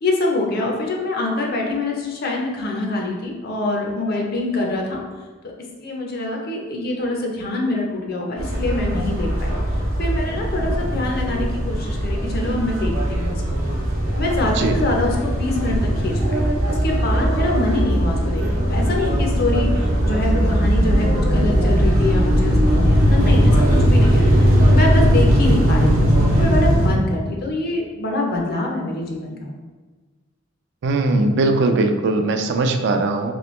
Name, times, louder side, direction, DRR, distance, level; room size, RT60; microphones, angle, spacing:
voice 1, 0.0-5.0 5.8-9.6 10.0-13.4 14.2-16.4 16.7-24.3 24.7-29.3, left 2 dB, 50° left, 0 dB, 0.5 m, -25 dB
sound 1, 8.4-26.9, equal, 85° right, 0.8 m, -18 dB
voice 2, 30.8-33.3, right 2 dB, 60° right, 5 dB, 0.4 m, -19 dB
3.1 x 3.0 x 3.0 m, 1.3 s
head